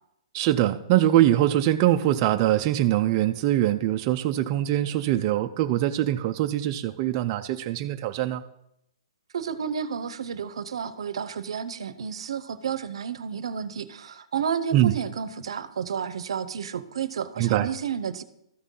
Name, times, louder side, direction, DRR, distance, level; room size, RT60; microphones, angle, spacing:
voice 1, 0.3-8.4 14.7-14.9 17.4-17.7, right 13 dB, 25° right, 6 dB, 0.3 m, -23 dB
voice 2, 9.3-18.2, right 7 dB, 75° right, 15 dB, 0.6 m, -31 dB
13.0 x 5.4 x 3.7 m, 0.80 s
hypercardioid pair, 165°, 3 cm